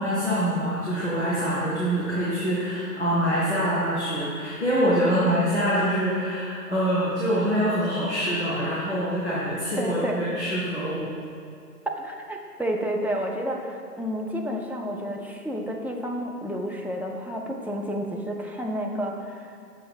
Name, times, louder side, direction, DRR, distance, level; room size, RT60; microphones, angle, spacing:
voice 1, 0.0-11.0, equal, 40° left, -10 dB, 1.2 m, -25 dB
voice 2, 9.8-10.2 12.0-19.7, equal, 5° right, 0 dB, 0.3 m, -30 dB
6.8 x 3.1 x 5.3 m, 2.3 s
figure-of-eight pair, 180°, 49 cm